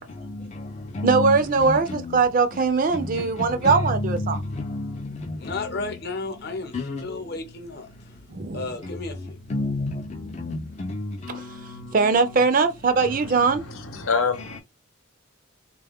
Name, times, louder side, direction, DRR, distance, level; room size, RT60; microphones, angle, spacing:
voice 1, 1.0-4.4 8.3-8.7 10.4-10.5 11.3-11.4 11.9-13.6, right 4 dB, 40° right, 0.4 m, -21 dB
voice 2, 4.3-5.4 6.7-7.0 8.8-9.0 9.5-11.8, left 2 dB, 35° left, 0.3 m, -31 dB
voice 3, 5.4-7.9 8.5-9.4, left 3 dB, 50° left, 0.8 m, -33 dB
voice 4, 13.0-14.6, left 5 dB, 85° left, 0.8 m, -28 dB
3.7 x 2.2 x 3.5 m
head